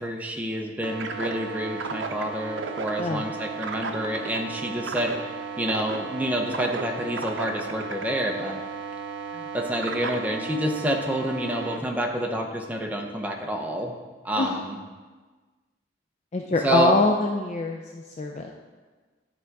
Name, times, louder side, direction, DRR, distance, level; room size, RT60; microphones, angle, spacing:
voice 1, 0.0-8.6 9.3-13.9 14.2-14.8 16.6-16.9, right 1 dB, 10° right, 1 dB, 0.7 m, -28 dB
sound 1, 0.8-11.8, right 4 dB, 90° right, 0.6 m, -34 dB
voice 2, 16.3-18.5, left 3 dB, 35° left, 2 dB, 0.4 m, -24 dB
11.0 x 3.7 x 4.6 m, 1.3 s
head